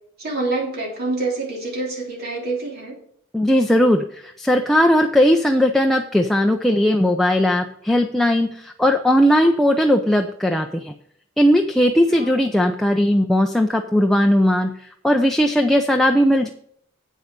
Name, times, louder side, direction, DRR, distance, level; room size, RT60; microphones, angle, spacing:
voice 1, 0.2-2.9 12.1-12.3, right 2 dB, 50° right, -2 dB, 3.3 m, -26 dB
voice 2, 3.3-10.9 11.4-16.5, equal, ahead, 2 dB, 0.6 m, -18 dB
8.5 x 7.7 x 5.3 m, 0.67 s
head